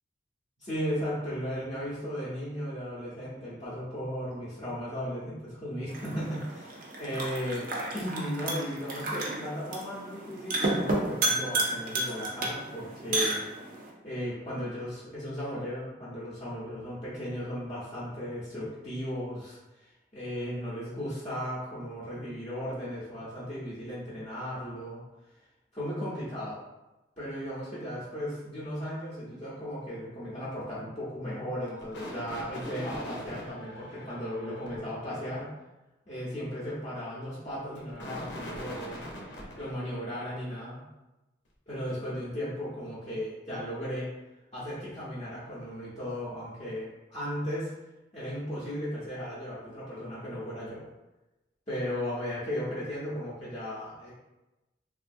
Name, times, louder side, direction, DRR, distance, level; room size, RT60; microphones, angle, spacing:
voice 1, 0.6-7.7 7.9-13.4 14.0-25.0 25.7-26.6 27.2-35.5 36.1-39.0 39.6-40.8 41.7-44.1 44.5-47.7 48.1-50.9 51.7-54.1, equal, 30° left, -10 dB, 0.6 m, -36 dB
sound 1, 5.9-13.9, right 2 dB, 45° right, 0.5 m, -32 dB
sound 2, 31.6-34.8 37.6-39.7, equal, 70° left, 0.7 m, -41 dB
3.1 x 2.4 x 2.6 m, 1.0 s
head